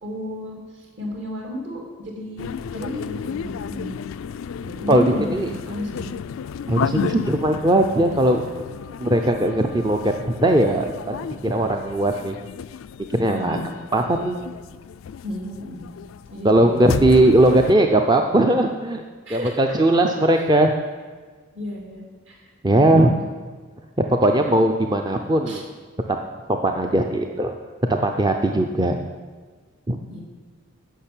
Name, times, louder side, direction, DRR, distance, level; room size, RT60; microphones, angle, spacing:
voice 1, 0.0-3.9 4.6-6.1 13.2-13.7 15.2-15.8 16.3-16.8 19.3-19.6 20.3-20.4 21.5-23.2 25.5-25.6 30.1-30.2, equal, 60° right, 0 dB, 2.8 m, -33 dB
sound 1, 2.4-17.7, left 7 dB, 75° left, 0.3 m, -33 dB
voice 2, 4.9-5.5 6.7-8.4 9.0-11.2 11.4-12.3 13.1-13.6 13.9-14.4 16.4-19.0 19.3-20.7 22.6-23.1 24.2-25.6 26.1-26.2 26.5-27.5 28.0-29.0 29.9-30.0, right 1 dB, 20° right, 4 dB, 0.5 m, -19 dB
10.0 x 6.7 x 8.7 m, 1.5 s
head